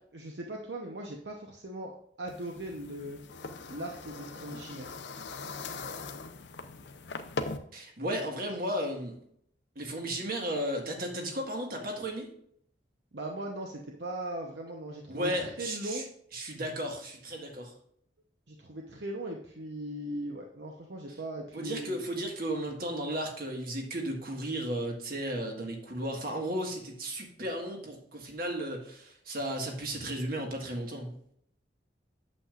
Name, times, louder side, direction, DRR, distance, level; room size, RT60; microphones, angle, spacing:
voice 1, 0.1-3.2 3.7-4.9 13.1-16.1 18.5-22.0, right 1 dB, 70° right, 1 dB, 0.9 m, -39 dB
sound 1, 2.3-7.6, left 3 dB, 70° left, 0.7 m, -40 dB
voice 2, 7.7-9.1 9.7-12.3 15.1-16.0 16.3-17.7 21.5-31.1, right 1 dB, 50° right, 2 dB, 1.7 m, -34 dB
8.5 x 7.4 x 2.5 m, 0.68 s
head